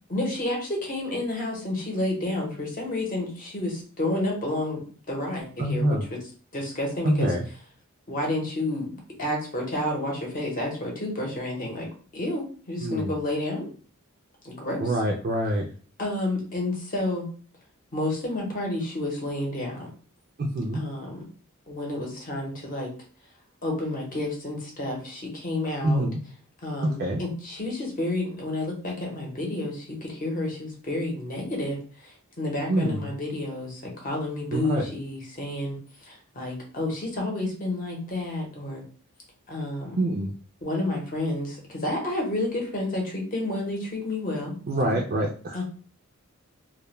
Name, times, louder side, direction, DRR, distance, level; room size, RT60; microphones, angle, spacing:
voice 1, 0.1-6.0 6.5-7.3 8.1-8.9 9.2-11.9 12.1-13.7 14.4-14.8 16.0-17.2 17.9-19.9 20.7-21.2 21.7-22.9 23.6-26.0 26.6-31.8 32.4-35.8 36.1-38.8 39.5-40.0 40.6-44.5 45.5-45.6, left 1 dB, 40° left, -1 dB, 0.8 m, -30 dB
voice 2, 5.6-6.0 7.0-7.5 12.8-13.1 14.8-15.6 20.4-20.8 25.8-26.2 26.8-27.2 32.7-33.1 34.5-34.8 40.0-40.3 44.7-45.6, right 1 dB, 40° right, 0 dB, 0.3 m, -25 dB
2.2 x 2.1 x 3.0 m, 0.40 s
head